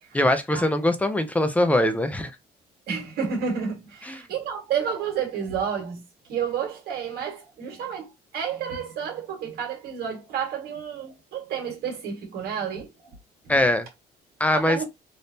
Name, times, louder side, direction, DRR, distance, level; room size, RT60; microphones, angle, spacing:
voice 1, 0.1-2.3 4.1-4.2 13.5-13.9 14.4-14.8, left 1 dB, 10° left, 0.6 m, -22 dB
voice 2, 2.9-6.0 6.3-13.1 13.4-13.6 14.5-14.9, right 7 dB, 65° right, 1.7 m, -30 dB
3.5 x 2.7 x 2.7 m
cardioid pair, 110°, 17 cm